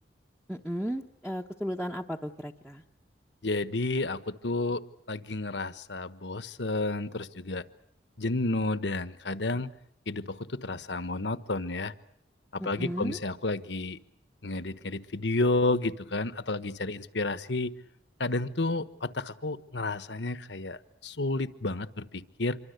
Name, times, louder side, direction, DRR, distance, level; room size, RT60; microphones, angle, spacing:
voice 1, 0.5-2.8 12.6-13.2, equal, 5° right, 0 dB, 1.0 m, -35 dB
voice 2, 3.4-7.6 8.2-9.7 10.1-11.9 12.5-14.0 14.4-17.7 18.2-22.6, left 2 dB, 70° left, 13 dB, 1.3 m, -31 dB
26.5 x 24.0 x 8.1 m, 0.72 s
head